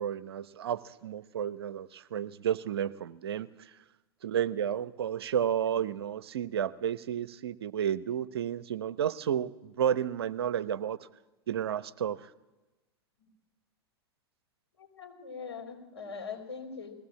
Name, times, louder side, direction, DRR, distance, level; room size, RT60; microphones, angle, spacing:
voice 1, 0.0-3.5 4.2-11.0 11.5-12.2, right 9 dB, 70° right, 15 dB, 0.8 m, -31 dB
voice 2, 14.8-16.9, left 5 dB, 80° left, 2 dB, 4.5 m, -42 dB
20.0 x 15.5 x 8.6 m, 1.1 s
figure-of-eight pair, 95°, 14 cm